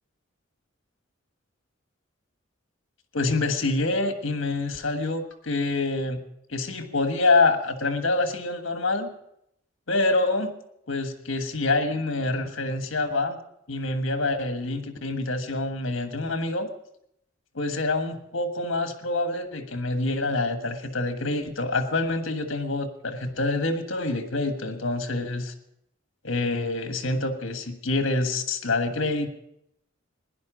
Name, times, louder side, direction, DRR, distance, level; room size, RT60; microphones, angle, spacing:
voice 1, 3.1-6.2 6.5-9.1 9.9-10.5 10.9-13.4 13.7-16.7 17.5-25.5 26.2-29.3, left 2 dB, 70° left, 7 dB, 1.5 m, -26 dB
16.5 x 11.0 x 5.1 m, 0.76 s
head